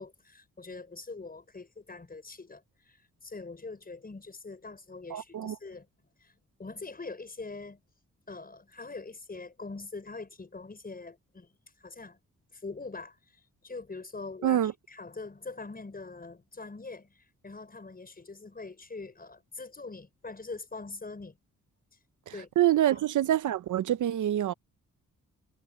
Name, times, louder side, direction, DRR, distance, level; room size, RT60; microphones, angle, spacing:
voice 1, 0.0-5.9 6.2-6.3 6.6-7.8 8.3-12.2 12.5-21.4 22.3-22.5 22.9-23.0, left 3 dB, 30° left, 6.2 m, -43 dB
voice 2, 5.1-5.6 14.4-14.7 22.6-24.5, right 12 dB, 75° right, 0.7 m, -26 dB
cardioid pair, 95°, 31 cm